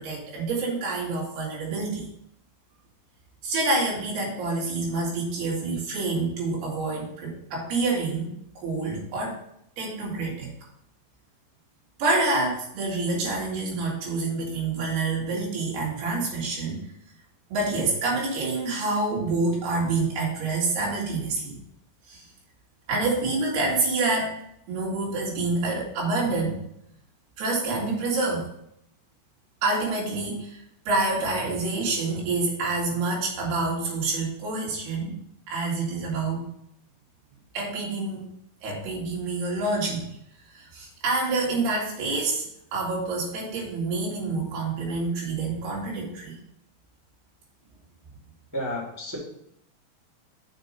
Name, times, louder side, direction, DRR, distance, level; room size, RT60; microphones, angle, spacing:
voice 1, 0.0-2.1 3.4-9.4 9.8-10.5 12.0-16.8 17.5-21.6 22.1-22.3 22.9-24.3 24.7-26.6 27.4-28.5 29.6-35.1 35.5-36.4 37.5-38.2 38.6-40.1 40.5-42.5 42.7-46.4, right 3 dB, 70° right, -3 dB, 4.2 m, -27 dB
voice 2, 48.5-49.2, equal, 5° right, -4 dB, 1.5 m, -31 dB
7.2 x 5.3 x 5.4 m, 0.74 s
omnidirectional pair, 5.0 m